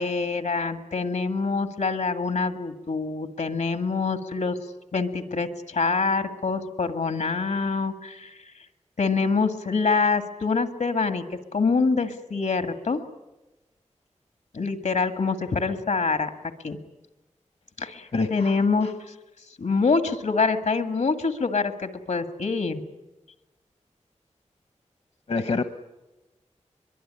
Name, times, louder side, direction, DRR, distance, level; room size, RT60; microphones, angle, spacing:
voice 1, 0.0-4.6 4.9-8.5 9.0-13.0 14.5-16.3 16.6-16.8 17.8-18.9 19.6-22.8, left 4 dB, 80° left, 9 dB, 2.0 m, -25 dB
voice 2, 18.1-18.9 25.3-25.6, left 3 dB, 60° left, 9 dB, 1.0 m, -27 dB
23.0 x 22.5 x 9.9 m, 1.0 s
wide cardioid pair, 85°, 12 cm